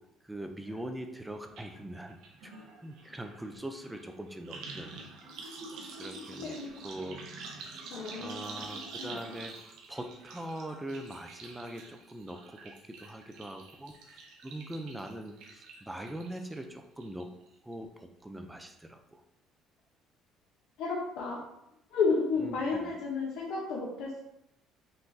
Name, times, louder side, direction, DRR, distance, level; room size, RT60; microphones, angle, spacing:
voice 1, 0.2-2.2 2.4-2.5 2.8-5.1 6.0-6.5 6.8-7.2 8.2-9.6 9.9-14.0 14.4-17.3 17.6-19.2 22.4-22.6, right 1 dB, 5° right, 5 dB, 0.5 m, -42 dB
sound 1, 1.6-1.7 2.0-16.6 17.0-17.5 17.7-17.8, right 3 dB, 75° right, 0.9 m, -47 dB
voice 2, 7.9-8.6 20.8-21.4 21.9-24.2, left 4 dB, 70° left, -3 dB, 0.9 m, -31 dB
5.4 x 3.6 x 2.7 m, 0.82 s
cardioid pair, 120°, 0 cm